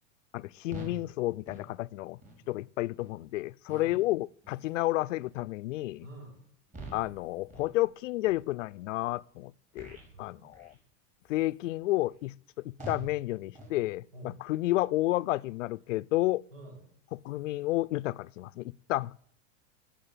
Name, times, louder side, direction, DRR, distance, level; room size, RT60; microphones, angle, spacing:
voice 1, 0.3-2.2 2.5-6.1 6.9-10.7 11.3-16.4 17.1-19.1, left 17 dB, 85° left, 0.5 m, -31 dB
sound 1, 0.7-1.0 1.4-1.7 2.2-2.4 3.0-3.1 3.7-4.1 4.4-4.7 5.2-5.5 5.9-6.2 6.7-7.2 7.5-7.8 8.2-8.4 9.0-9.2 9.7-10.1 10.5-10.8 11.3-11.5 12.0-12.2 12.8-13.1 13.5-13.8, right 1 dB, 20° right, 5.2 m, -46 dB
voice 2, 6.0-6.4 10.1-10.5 14.1-14.3 16.5-16.8, right 1 dB, 85° right, 6.4 m, -48 dB
17.5 x 7.5 x 8.5 m
supercardioid pair, 135°, 37 cm